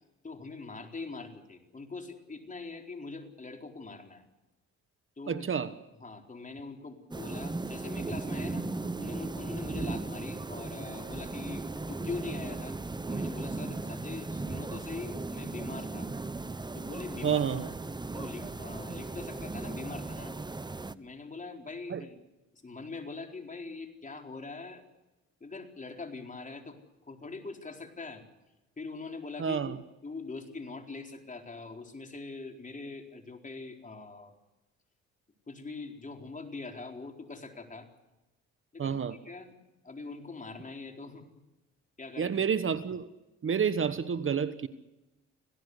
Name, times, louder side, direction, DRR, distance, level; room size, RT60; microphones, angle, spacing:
voice 1, 0.2-4.2 5.2-5.5 6.0-12.8 13.0-16.1 16.7-17.5 18.1-20.3 20.9-22.2 22.5-24.8 25.4-26.8 27.1-28.2 28.8-34.3 35.5-37.9 38.7-39.5 39.8-41.3 42.0-42.3, left 3 dB, 25° left, 3 dB, 4.3 m, -42 dB
voice 2, 5.3-5.7 17.2-17.7 21.9-22.0 29.4-29.8 38.8-39.2 42.2-43.1 43.4-44.7, right 7 dB, 45° right, 12 dB, 1.3 m, -29 dB
sound 1, 7.1-20.9, right 3 dB, 15° right, 0.9 m, -37 dB
26.5 x 17.0 x 8.1 m, 1.0 s
cardioid pair, 90°, 30 cm